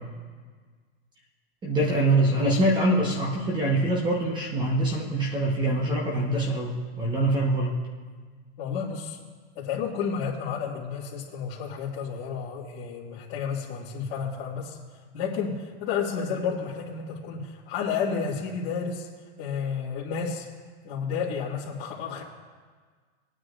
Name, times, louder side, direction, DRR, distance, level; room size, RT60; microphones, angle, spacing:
voice 1, 1.6-7.7, right 1 dB, 15° right, -2 dB, 1.1 m, -24 dB
voice 2, 8.6-9.2 9.6-14.8 15.1-19.1 19.4-20.5 20.8-22.2, left 6 dB, 50° left, -8 dB, 2.0 m, -31 dB
21.5 x 9.4 x 2.5 m, 1.5 s
supercardioid pair, 155°, 33 cm